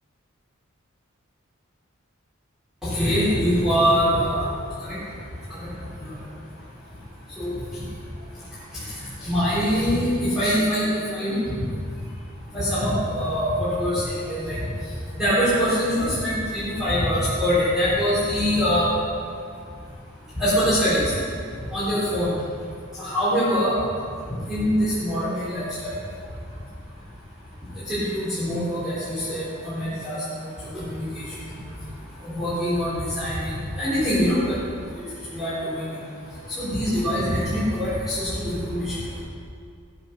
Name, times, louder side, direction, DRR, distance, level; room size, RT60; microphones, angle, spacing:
voice 1, 2.8-4.5 4.9-5.0 6.0-6.1 7.4-7.5 9.2-11.3 12.5-14.6 15.2-18.9 20.4-21.1 21.7-22.3 23.0-23.7 24.5-25.9 27.9-30.2 30.7-31.2 32.2-34.5 35.3-35.9 36.6-38.9, equal, ahead, -14 dB, 4.0 m, -23 dB
16.0 x 8.0 x 5.8 m, 2.3 s
head